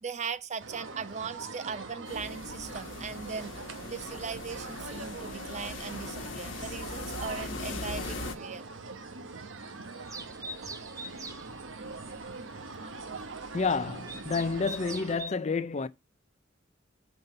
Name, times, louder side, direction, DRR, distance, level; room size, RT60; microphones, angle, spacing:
voice 1, 0.0-3.6 3.9-8.6, right 5 dB, 35° right, 0.6 m, -39 dB
sound 1, 0.6-15.1, right 3 dB, 75° right, 1.1 m, -42 dB
sound 2, 2.0-8.4, left 3 dB, 70° left, 1.2 m, -40 dB
sound 3, 10.1-15.3, right 2 dB, 15° right, 0.9 m, -45 dB
voice 2, 13.5-15.9, left 4 dB, 35° left, 0.5 m, -29 dB
5.7 x 5.4 x 6.7 m
head